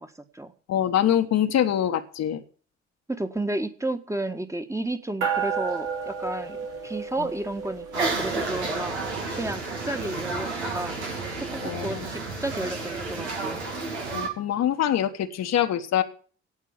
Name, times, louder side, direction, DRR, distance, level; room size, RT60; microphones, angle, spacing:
voice 1, 0.0-0.5 3.1-9.0 9.3-11.0 11.5-13.6, right 1 dB, 10° right, 8 dB, 1.6 m, -32 dB
voice 2, 0.7-2.4 7.2-7.3 11.6-12.1 14.1-16.0, left 10 dB, 50° left, 8 dB, 1.3 m, -24 dB
sound 1, 5.2-12.9, right 6 dB, 65° right, 3.1 m, -35 dB
sound 2, 7.9-14.3, right 3 dB, 85° right, 2.2 m, -31 dB
17.0 x 6.0 x 8.8 m, 0.43 s
figure-of-eight pair, 45°, 33 cm